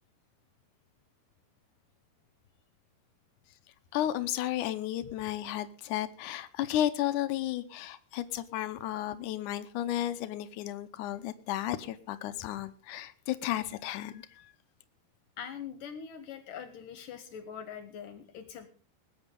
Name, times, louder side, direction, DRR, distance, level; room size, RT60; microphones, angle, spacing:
voice 1, 3.9-14.5, left 12 dB, 85° left, 11 dB, 1.8 m, -33 dB
voice 2, 15.4-18.7, left 7 dB, 70° left, 11 dB, 2.4 m, -43 dB
20.5 x 9.0 x 5.3 m, 0.36 s
omnidirectional pair, 4.7 m